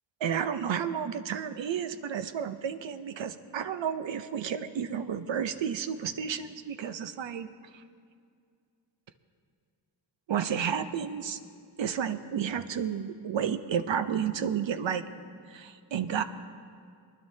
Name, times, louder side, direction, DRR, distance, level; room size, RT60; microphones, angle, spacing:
voice 1, 0.2-7.5 10.3-11.4 11.8-15.0 15.5-16.2, right 8 dB, 70° right, 10 dB, 0.8 m, -31 dB
22.0 x 11.0 x 2.8 m, 2.2 s
cardioid pair, 50°, 47 cm